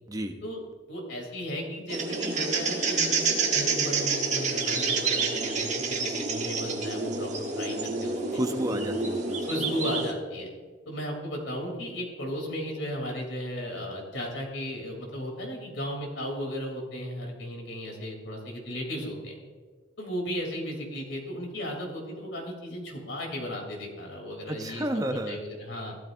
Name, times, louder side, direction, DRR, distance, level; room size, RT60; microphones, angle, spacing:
voice 1, 0.1-0.4 8.3-9.5 24.5-25.4, right 1 dB, 20° right, 5 dB, 0.8 m, -31 dB
voice 2, 0.9-8.4 9.5-10.5 10.9-19.4 20.0-26.0, equal, 90° left, 0 dB, 3.7 m, -35 dB
sound 1, 1.9-10.1, right 4 dB, 40° right, 1.4 m, -28 dB
15.5 x 12.5 x 2.7 m, 1.5 s
head